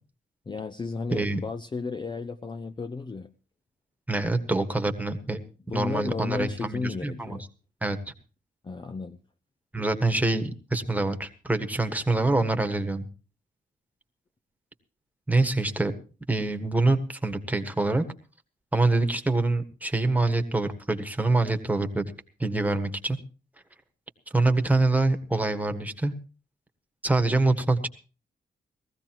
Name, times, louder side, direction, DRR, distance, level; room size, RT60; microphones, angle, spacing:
voice 1, 0.5-3.3 5.7-7.5 8.6-9.2, left 4 dB, 25° left, 10 dB, 0.6 m, -33 dB
voice 2, 4.1-5.4 5.7-7.4 7.8-8.0 9.7-13.0 15.3-15.9 16.3-18.0 18.7-22.1 22.4-23.2 24.3-26.1 27.0-27.9, right 2 dB, 10° right, 7 dB, 1.5 m, -25 dB
19.5 x 15.0 x 3.0 m, 0.36 s
cardioid pair, 100°, 19 cm